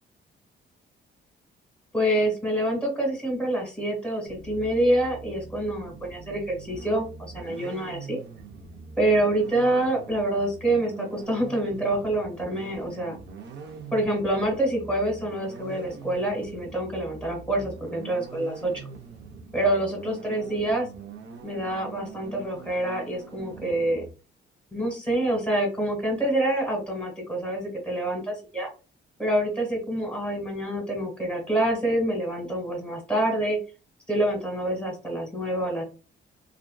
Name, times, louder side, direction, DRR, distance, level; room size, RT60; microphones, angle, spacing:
voice 1, 1.9-8.2 9.0-13.1 13.9-18.9 19.5-20.9 21.4-24.0 24.7-28.7 29.2-33.6 34.1-35.8, right 1 dB, 5° left, 2 dB, 1.4 m, -26 dB
sound 1, 4.2-24.1, right 4 dB, 65° right, 0.6 m, -43 dB
2.4 x 2.3 x 2.2 m, 0.33 s
cardioid pair, 90°, 20 cm